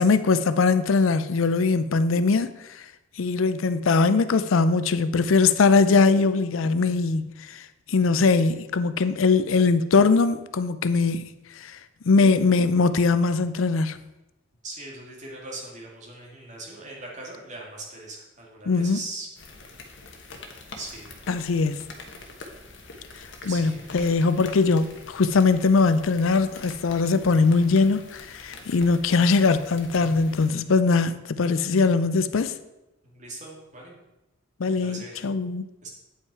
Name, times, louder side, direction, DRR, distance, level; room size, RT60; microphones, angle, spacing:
voice 1, 0.0-2.8 3.2-7.6 7.9-11.8 12.0-14.0 18.7-19.0 21.3-21.8 23.4-32.5 34.6-35.7, left 4 dB, 80° left, 12 dB, 0.5 m, -21 dB
voice 2, 14.6-19.3 20.8-21.1 23.5-23.9 33.0-34.0 34.8-35.2 35.8-35.9, right 2 dB, 35° right, -2 dB, 2.1 m, -40 dB
sound 1, 19.4-30.5, left 3 dB, 60° left, 1.1 m, -44 dB
9.0 x 5.6 x 4.7 m, 0.98 s
head